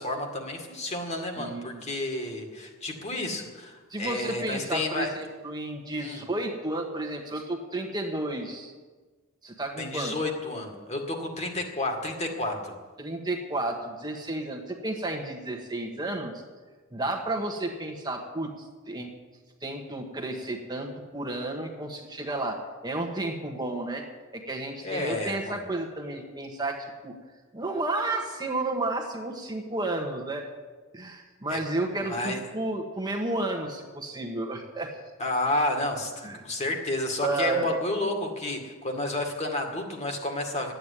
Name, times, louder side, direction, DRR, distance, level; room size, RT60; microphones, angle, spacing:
voice 1, 0.0-5.1 6.0-6.3 9.8-12.7 24.8-25.6 31.5-31.6 32.0-32.4 35.2-40.7, left 2 dB, 30° left, 2 dB, 2.1 m, -31 dB
voice 2, 1.4-1.8 3.9-8.7 9.4-10.1 13.0-16.3 16.9-19.1 19.6-24.0 24.3-27.1 27.5-30.4 30.9-34.9 36.2-36.5 37.2-37.8, right 2 dB, 20° right, 2 dB, 1.4 m, -32 dB
12.5 x 9.2 x 9.9 m, 1.3 s
head